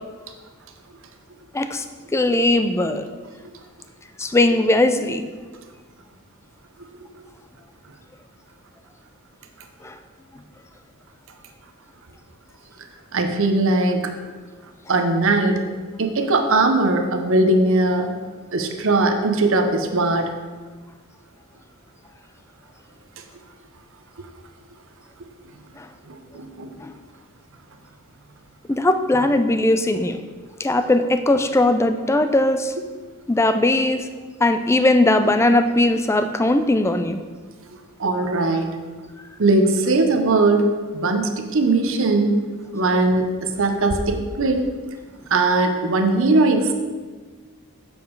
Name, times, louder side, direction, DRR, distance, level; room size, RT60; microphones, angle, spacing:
voice 1, 1.5-1.9 2.1-3.1 4.2-5.2 9.8-10.0 25.8-25.9 26.8-26.9 28.7-30.2 30.6-32.7 33.3-34.1 34.4-37.2, left 2 dB, 10° left, 8 dB, 0.3 m, -19 dB
voice 2, 13.1-14.1 14.9-15.7 16.0-18.1 18.5-20.3 26.1-26.7 38.0-38.8 39.4-42.4 42.7-44.7 45.3-46.7, right 2 dB, 65° right, 5 dB, 0.7 m, -20 dB
7.2 x 5.2 x 4.6 m, 1.4 s
head